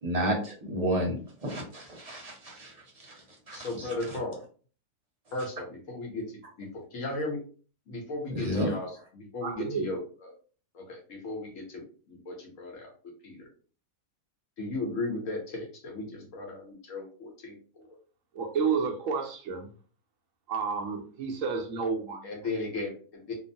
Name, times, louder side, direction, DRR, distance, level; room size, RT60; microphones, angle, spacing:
voice 1, 0.0-1.1 1.4-3.9 8.3-8.8, equal, 30° right, 0.8 m, -31 dB
voice 2, 3.5-4.4 5.3-6.3 6.6-7.4 7.9-10.3 10.7-12.9 13.2-13.5 14.6-18.0 22.2-23.4, left 2 dB, 60° left, 1.2 m, -36 dB
voice 3, 9.4-10.0 18.3-19.7 20.5-22.3, right 5 dB, 70° right, 0.9 m, -30 dB
2.9 x 2.0 x 2.6 m
omnidirectional pair, 1.6 m